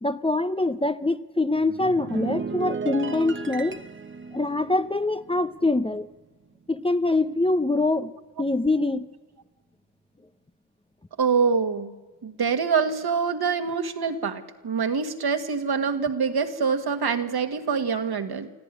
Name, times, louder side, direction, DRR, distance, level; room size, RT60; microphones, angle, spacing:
voice 1, 0.0-3.8 4.3-6.1 6.7-8.1 8.4-9.1, left 2 dB, 15° left, 0.7 m, -24 dB
sound 1, 1.5-6.2 6.5-6.8, right 4 dB, 25° right, 1.0 m, -35 dB
voice 2, 11.2-11.9 12.2-18.5, right 5 dB, 60° right, 1.8 m, -25 dB
26.0 x 14.0 x 9.9 m
supercardioid pair, 45°, 43 cm